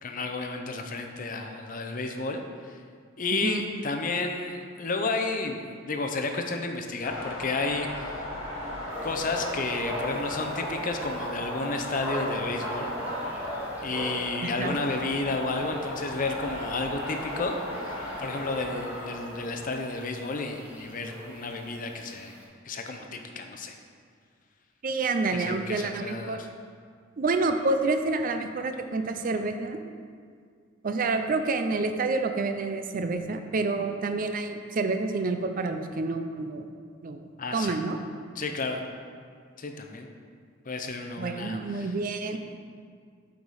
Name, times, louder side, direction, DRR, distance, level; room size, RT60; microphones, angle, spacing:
voice 1, 0.0-2.4 2.7-2.8 3.2-5.6 5.9-8.2 9.0-12.9 13.8-17.6 17.8-22.3 22.6-23.7 25.3-26.5 37.4-37.8 38.4-38.8 39.6-40.1 40.7-41.9 42.3-42.4, left 3 dB, 40° left, 5 dB, 0.6 m, -32 dB
voice 2, 3.3-3.7 14.4-14.8 24.8-26.4 27.2-29.8 30.8-36.7 37.0-37.2 37.5-38.0 41.2-42.4, right 3 dB, 45° right, 7 dB, 0.4 m, -28 dB
sound 1, 7.0-21.9, left 1 dB, 80° left, 1.7 m, -37 dB
sound 2, 8.9-22.4, equal, 10° right, 1.6 m, -39 dB
8.3 x 4.8 x 4.1 m, 2.1 s
head